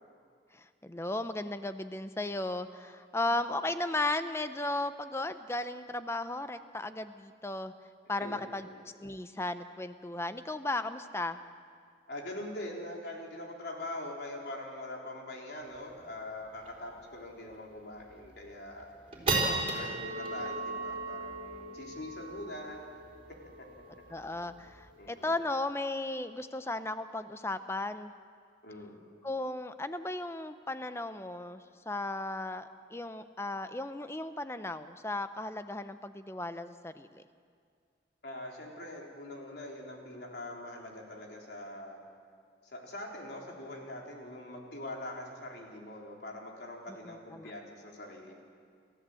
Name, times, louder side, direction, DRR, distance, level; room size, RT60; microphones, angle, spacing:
voice 1, 0.5-7.7 8.1-8.7 9.0-11.4 19.2-19.3 24.1-28.1 29.2-37.2 47.0-47.5, left 2 dB, 15° left, 11 dB, 0.7 m, -35 dB
voice 2, 8.2-8.7 12.1-18.9 19.3-22.8 23.6-23.7 25.0-25.3 28.6-29.0 38.2-42.0 42.6-48.4, left 1 dB, 65° left, 0 dB, 3.6 m, -43 dB
sound 1, 15.8-15.9 16.1-16.2 16.6-16.9 17.3-17.4 18.0-18.4 18.8-25.4, right 2 dB, 30° right, 3.7 m, -36 dB
29.5 x 14.0 x 7.8 m, 2.2 s
head